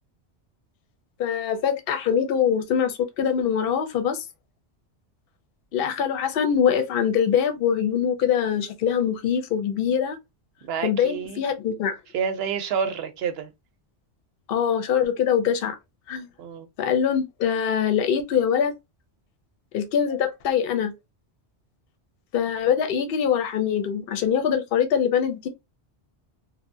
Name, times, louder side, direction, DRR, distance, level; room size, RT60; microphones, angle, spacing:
voice 1, 1.2-4.2 5.7-10.2 10.8-11.9 14.5-15.8 16.1-16.3 16.8-18.7 19.7-20.9 22.3-25.5, left 8 dB, 60° left, 0.7 m, -23 dB
voice 2, 10.6-11.4 12.1-13.5 16.4-16.7, right 7 dB, 70° right, 0.8 m, -28 dB
2.8 x 2.1 x 2.5 m
omnidirectional pair, 1.1 m